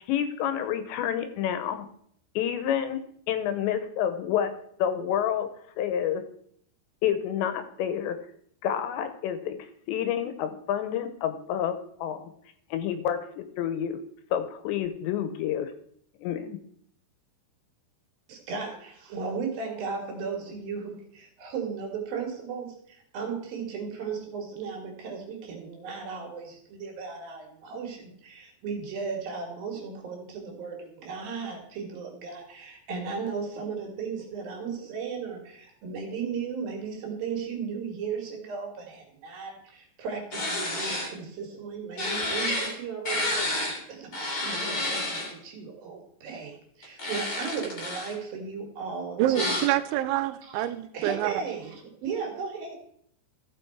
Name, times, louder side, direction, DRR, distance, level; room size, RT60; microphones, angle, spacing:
voice 1, 0.1-1.9 2.4-3.0 3.3-4.5 4.8-5.5 5.8-6.2 7.0-8.2 8.6-9.6 9.9-12.2 12.7-14.0 14.3-15.7 16.2-16.6, left 9 dB, 80° left, 10 dB, 2.9 m, -28 dB
voice 2, 18.3-49.6 50.5-50.7 50.9-52.8, right 5 dB, 60° right, 1 dB, 3.4 m, -36 dB
sound 1, 40.3-41.1 42.0-42.7 43.0-43.8 44.1-45.3 46.8-48.1 49.3-49.7, left 1 dB, 30° left, 2.0 m, -30 dB
voice 3, 49.2-51.4, right 13 dB, 85° right, 13 dB, 3.0 m, -27 dB
14.5 x 6.0 x 4.6 m, 0.66 s
omnidirectional pair, 5.3 m